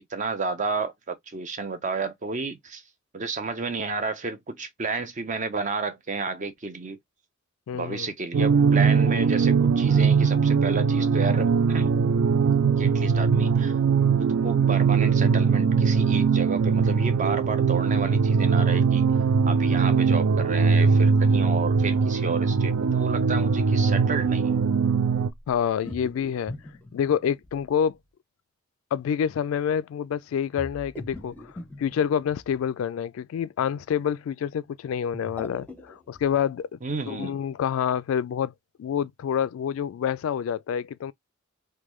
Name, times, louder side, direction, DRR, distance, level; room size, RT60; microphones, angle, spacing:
voice 1, 0.0-2.8 3.1-7.0 7.7-11.9 12.8-13.8 14.2-19.0 19.5-24.6 36.8-37.4, right 4 dB, 40° right, 0.6 m, -31 dB
voice 2, 7.7-8.1 25.5-26.5 26.9-28.0 28.9-36.8 37.1-38.5 38.8-41.1, left 8 dB, 80° left, 0.3 m, -27 dB
sound 1, 8.3-25.3, right 5 dB, 80° right, 0.4 m, -21 dB
sound 2, 25.2-27.9 30.6-32.6 34.9-36.4, left 1 dB, 10° left, 0.6 m, -42 dB
3.5 x 2.2 x 3.1 m
head